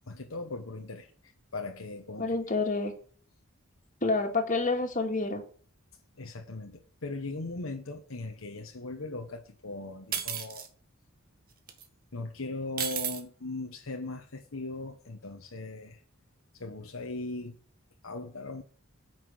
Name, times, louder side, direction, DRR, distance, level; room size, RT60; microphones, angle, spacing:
voice 1, 0.1-1.1 1.5-2.6 6.2-10.6 12.1-16.0 16.5-17.6 18.0-18.6, left 2 dB, 70° left, 3 dB, 1.2 m, -39 dB
voice 2, 2.2-2.9 4.0-5.4, left 3 dB, 40° left, 3 dB, 2.3 m, -28 dB
sound 1, 10.1-10.7 11.7-11.8 12.8-13.2, right 8 dB, 45° right, 1.6 m, -33 dB
9.7 x 6.1 x 7.8 m, 0.43 s
head